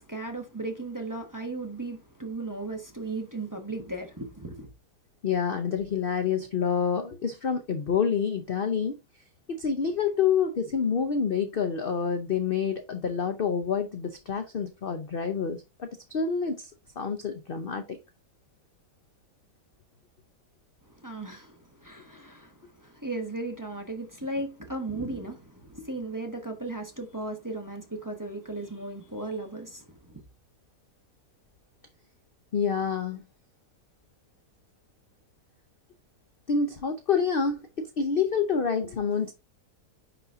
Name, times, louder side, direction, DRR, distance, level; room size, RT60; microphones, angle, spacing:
voice 1, 0.0-4.7 20.9-30.2, right 2 dB, 15° right, 1.1 m, -36 dB
voice 2, 5.2-9.0 9.5-16.7 17.0-18.0 32.5-33.2 36.5-39.3, left 6 dB, 50° left, 0.7 m, -27 dB
9.7 x 4.1 x 2.6 m
omnidirectional pair, 1.7 m